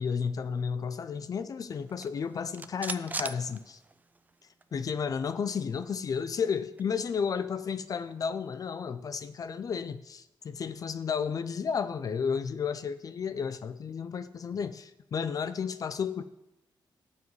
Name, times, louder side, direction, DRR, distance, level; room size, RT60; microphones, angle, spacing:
voice 1, 0.0-3.8 4.7-16.2, left 6 dB, 45° left, 12 dB, 0.4 m, -32 dB
sound 1, 1.8-4.3 4.6-4.7 5.0-6.9, right 3 dB, 20° right, 0.4 m, -41 dB
17.0 x 7.2 x 3.2 m, 0.89 s
wide cardioid pair, 135°, 8 cm